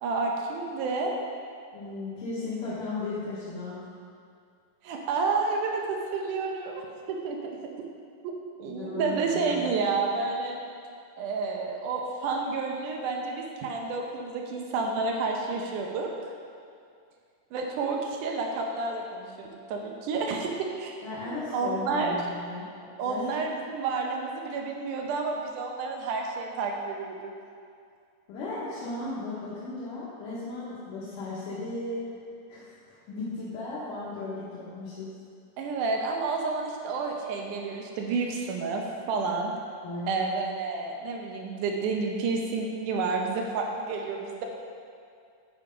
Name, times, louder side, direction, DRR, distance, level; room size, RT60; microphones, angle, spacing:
voice 1, 0.0-1.1 4.8-6.8 7.1-7.5 8.6-10.6 11.2-16.1 17.5-21.0 21.5-22.2 23.0-27.3 35.6-39.5 40.1-44.5, right 4 dB, 80° right, 1 dB, 2.1 m, -30 dB
voice 2, 1.7-3.8 8.7-9.7 21.0-22.7 23.0-23.2 28.3-32.0 32.5-35.1 39.8-40.3, left 2 dB, 75° left, -10 dB, 2.8 m, -36 dB
7.9 x 4.7 x 5.3 m, 2.4 s
omnidirectional pair, 3.8 m